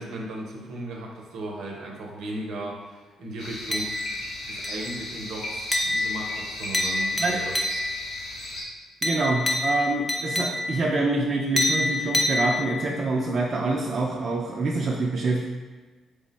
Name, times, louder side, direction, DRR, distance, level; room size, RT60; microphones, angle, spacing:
voice 1, 0.0-4.1 4.4-7.6, right 1 dB, 80° right, -1 dB, 0.7 m, -36 dB
sound 1, 3.4-8.6, left 1 dB, 80° left, 0.8 m, -36 dB
sound 2, 3.7-4.3 4.6-5.1 5.7-8.1 9.0-10.9 11.6-13.0, left 2 dB, 10° left, 0.5 m, -27 dB
voice 2, 9.0-15.4, right 3 dB, 50° right, -2 dB, 0.4 m, -26 dB
3.4 x 2.1 x 3.9 m, 1.3 s
cardioid pair, 90°, 0 cm